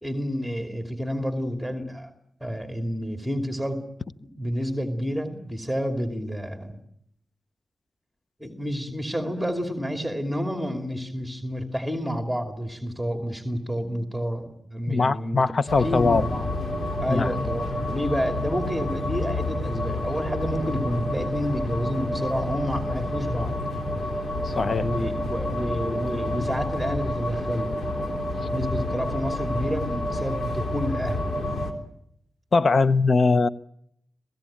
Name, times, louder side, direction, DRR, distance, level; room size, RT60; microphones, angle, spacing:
voice 1, 0.0-2.1 2.4-3.8 4.2-6.8 8.4-15.4 15.8-16.5 17.0-23.5 24.7-27.8 28.5-31.3, equal, 5° left, 2.8 m, -29 dB
voice 2, 14.9-16.2 17.1-17.3 24.4-24.9 28.4-28.5 32.5-33.5, left 4 dB, 60° left, 0.8 m, -21 dB
sound 1, 15.7-31.7, left 1 dB, 85° left, 3.6 m, -29 dB
26.5 x 17.0 x 8.9 m
cardioid pair, 65°, 0 cm